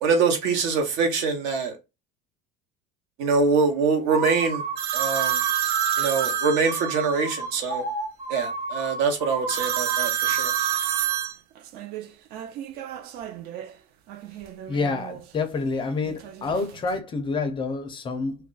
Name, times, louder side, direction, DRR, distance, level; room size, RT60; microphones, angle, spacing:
voice 1, 0.0-1.7 3.2-4.6 4.9-5.4 6.0-7.8 8.3-10.5, right 4 dB, 70° right, 1.0 m, -24 dB
sound 1, 4.1-11.3, right 4 dB, 30° right, 0.8 m, -31 dB
sound 2, 4.8-7.2 9.5-13.7 14.1-15.2 16.1-17.0, right 10 dB, 55° right, 0.4 m, -29 dB
voice 2, 14.7-18.4, left 4 dB, 25° left, 0.4 m, -28 dB
2.3 x 2.2 x 3.7 m
cardioid pair, 145°, 20 cm